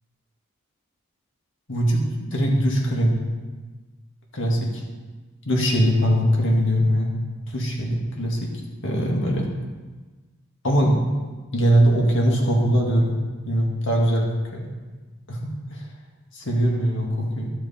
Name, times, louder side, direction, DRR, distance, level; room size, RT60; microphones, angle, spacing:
voice 1, 1.7-3.2 4.3-4.8 5.5-7.1 7.5-8.5 8.8-9.5 10.6-11.0 11.5-13.2 13.5-14.3 14.5-14.7 15.3-15.8 16.3-17.5, equal, 60° left, -1 dB, 1.9 m, -21 dB
13.0 x 6.7 x 4.3 m, 1.3 s
head